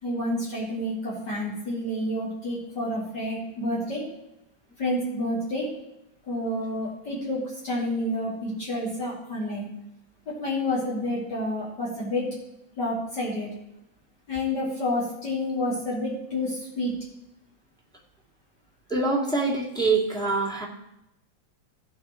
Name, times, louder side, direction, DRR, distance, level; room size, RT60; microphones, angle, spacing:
voice 1, 0.0-4.1 4.8-5.7 6.3-9.7 10.3-12.3 12.8-13.5 14.3-16.9, left 1 dB, 55° left, -6 dB, 3.3 m, -29 dB
voice 2, 18.9-20.7, right 3 dB, ahead, -3 dB, 2.1 m, -24 dB
16.0 x 5.7 x 4.3 m, 0.87 s
omnidirectional pair, 2.3 m